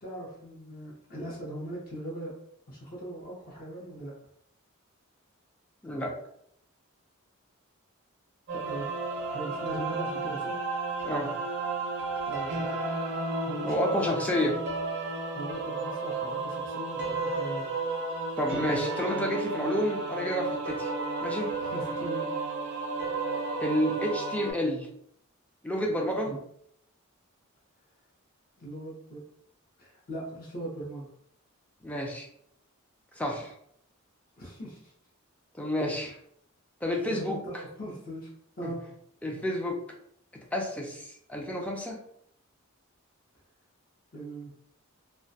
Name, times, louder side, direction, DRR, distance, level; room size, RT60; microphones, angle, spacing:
voice 1, 0.0-2.3 2.7-4.1 8.5-8.9 9.3-10.5 11.9-12.7 13.4-14.4 15.3-17.6 21.6-22.3 26.3-26.4 28.6-29.2 29.8-31.1 34.4-34.9 37.1-38.3 38.6-38.8 44.1-44.5, right 1 dB, 40° left, -4 dB, 0.6 m, -39 dB
voice 2, 5.8-6.1 11.0-11.3 13.6-14.6 18.4-20.9 21.2-21.5 23.6-24.9 25.6-26.3 31.8-32.3 33.1-33.5 35.5-36.2 36.8-37.4 38.6-38.7 39.2-39.8 40.3-42.0, equal, 5° left, 0 dB, 0.3 m, -30 dB
sound 1, 8.5-24.5, right 3 dB, 50° right, 0.5 m, -33 dB
2.3 x 2.1 x 2.6 m, 0.70 s
head